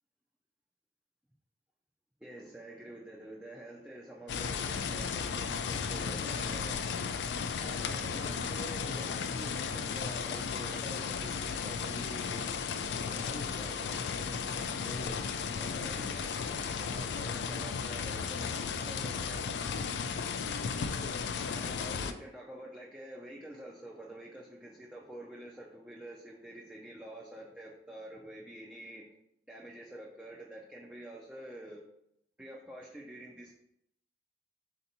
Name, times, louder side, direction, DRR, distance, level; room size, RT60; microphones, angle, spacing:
voice 1, 2.2-7.0 7.5-12.4 12.9-15.2 15.5-19.4 21.5-29.1 29.5-31.8 32.4-33.5, right 1 dB, 5° right, -3 dB, 0.4 m, -48 dB
sound 1, 4.3-22.1, left 6 dB, 65° left, 0.3 m, -35 dB
4.4 x 2.8 x 3.9 m, 0.76 s
head